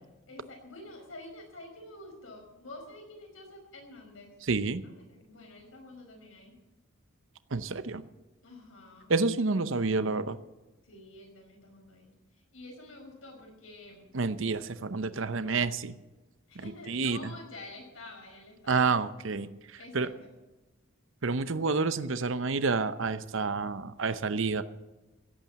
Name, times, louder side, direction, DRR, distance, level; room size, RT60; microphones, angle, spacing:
voice 1, 0.3-4.3 4.8-6.5 8.4-9.1 10.8-12.1 12.5-14.1 16.5-18.8 19.8-20.1, left 2 dB, 70° left, 2 dB, 5.1 m, -48 dB
voice 2, 4.5-4.8 7.5-8.0 9.1-10.4 14.1-15.9 16.9-17.3 18.7-19.5 19.9-20.1 21.2-24.6, right 4 dB, 65° right, 13 dB, 0.7 m, -29 dB
16.5 x 8.8 x 7.4 m, 1.1 s
head